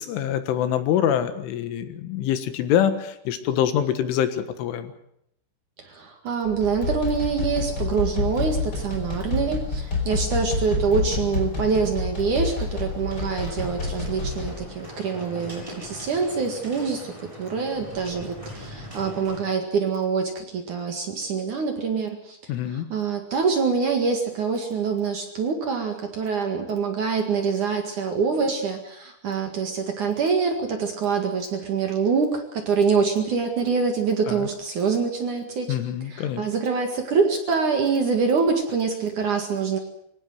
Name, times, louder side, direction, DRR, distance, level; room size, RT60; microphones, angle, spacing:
voice 1, 0.0-4.9 22.5-22.9 34.3-34.5 35.7-36.4, left 10 dB, 80° left, 10 dB, 4.0 m, -25 dB
voice 2, 5.8-22.4 22.7-35.8 36.1-39.8, right 5 dB, 50° right, 4 dB, 2.7 m, -25 dB
sound 1, 6.4-14.6, left 3 dB, 20° left, 5.1 m, -28 dB
sound 2, 12.4-19.4, left 1 dB, 5° right, 7.6 m, -41 dB
24.0 x 17.0 x 8.0 m, 0.76 s
omnidirectional pair, 5.6 m